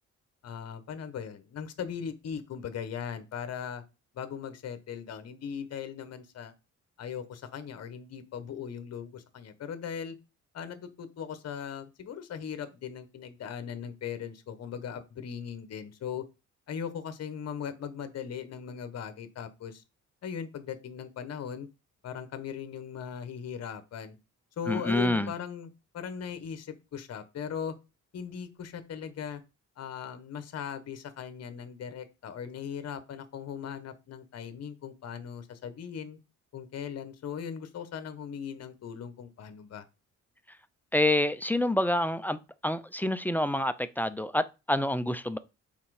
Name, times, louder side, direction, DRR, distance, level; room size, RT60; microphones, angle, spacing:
voice 1, 0.4-3.8 4.1-6.5 7.0-10.2 10.5-16.2 16.7-19.8 20.2-21.7 22.0-24.1 24.6-27.7 28.1-29.4 29.8-36.2 36.5-39.8, left 7 dB, 55° left, 1.1 m, -39 dB
voice 2, 24.7-25.3 40.9-45.4, left 1 dB, 5° left, 0.5 m, -27 dB
5.7 x 4.2 x 4.8 m
cardioid pair, 90°, 30 cm